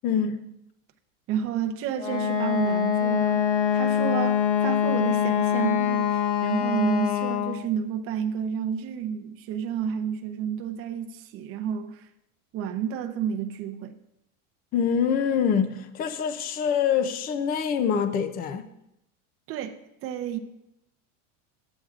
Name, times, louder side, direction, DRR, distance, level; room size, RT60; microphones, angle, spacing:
voice 1, 0.0-0.6 14.7-18.7, left 7 dB, 25° left, 0.4 m, -25 dB
voice 2, 1.3-12.0 12.5-14.0 19.5-20.4, right 8 dB, 35° right, 0.6 m, -30 dB
Wind instrument woodwind instrument, 2.0-7.7, left 9 dB, 70° left, 1.0 m, -24 dB
12.5 x 7.8 x 2.4 m
supercardioid pair, 145°, 39 cm